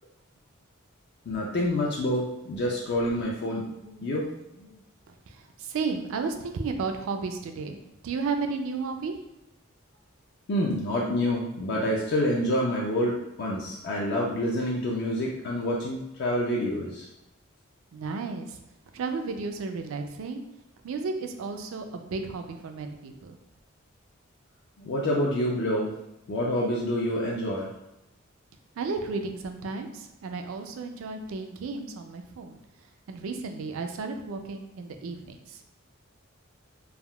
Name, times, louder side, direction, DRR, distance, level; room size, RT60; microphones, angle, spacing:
voice 1, 1.3-4.3 4.6-4.8 10.5-17.1 24.8-25.9 26.3-27.7, left 1 dB, 55° left, -3 dB, 0.4 m, -27 dB
voice 2, 5.1-7.8 8.0-9.1 17.9-18.6 18.9-20.4 20.8-23.4 28.8-32.6 33.1-35.6, right 4 dB, 85° right, 6 dB, 0.4 m, -33 dB
3.4 x 2.2 x 2.2 m, 0.89 s
head